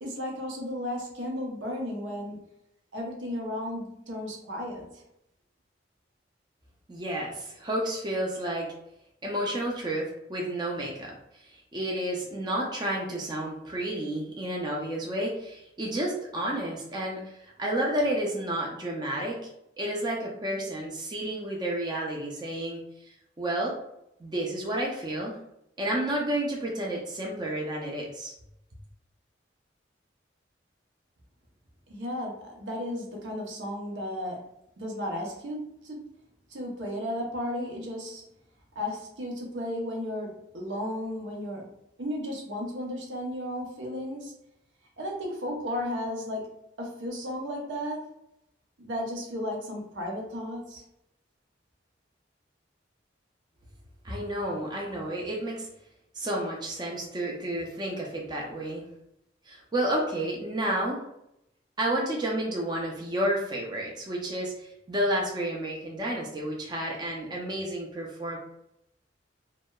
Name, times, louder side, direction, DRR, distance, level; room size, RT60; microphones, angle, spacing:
voice 1, 0.0-2.5 2.9-5.0 31.9-34.4 34.8-36.1 36.5-38.2 38.8-41.7 42.0-44.3 45.0-48.1 48.8-50.8, left 1 dB, 80° right, 0 dB, 0.7 m, -34 dB
voice 2, 6.9-8.7 9.2-10.0 10.3-11.4 11.7-19.5 19.8-23.1 23.4-23.7 24.2-25.4 25.8-28.3 54.0-55.7 56.1-58.8 59.5-61.0 61.8-68.4, right 1 dB, 25° right, -2 dB, 0.4 m, -31 dB
2.7 x 2.1 x 2.2 m, 0.79 s
head